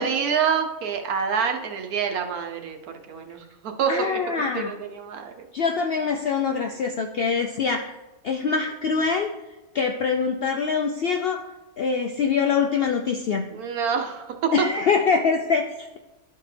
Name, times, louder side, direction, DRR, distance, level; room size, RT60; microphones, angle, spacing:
voice 1, 0.0-4.2 4.5-5.5 13.5-14.5, right 7 dB, 85° right, 4 dB, 1.3 m, -27 dB
voice 2, 3.9-4.7 5.5-8.0 8.2-9.3 9.7-11.4 11.8-13.4 14.5-16.0, left 5 dB, 75° left, 4 dB, 0.5 m, -24 dB
12.0 x 4.4 x 3.3 m, 1.1 s
omnidirectional pair, 1.5 m